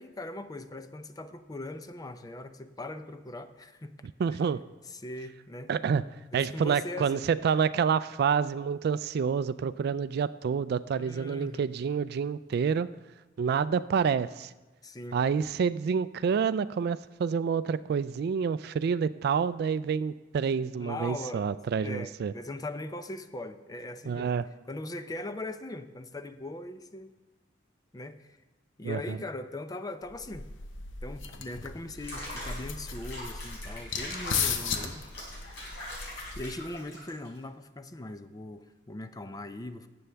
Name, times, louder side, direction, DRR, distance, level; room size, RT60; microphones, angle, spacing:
voice 1, 0.0-3.9 4.9-5.7 6.3-7.3 11.0-11.7 14.8-15.2 20.8-21.5 21.8-24.3 24.7-27.1 27.9-28.4 28.8-30.5 31.0-35.0 36.4-39.9, left 2 dB, 20° left, 10 dB, 0.5 m, -40 dB
voice 2, 4.2-4.6 5.7-6.0 6.3-12.9 13.4-14.5 15.1-22.3 24.1-24.4 28.8-29.2, right 6 dB, 55° right, 16 dB, 0.3 m, -28 dB
sound 1, 30.1-36.8, left 5 dB, 90° left, 0.9 m, -36 dB
Water / Bathtub (filling or washing), 31.9-37.4, left 1 dB, 65° left, 4.3 m, -42 dB
18.0 x 7.8 x 3.4 m, 1.2 s
head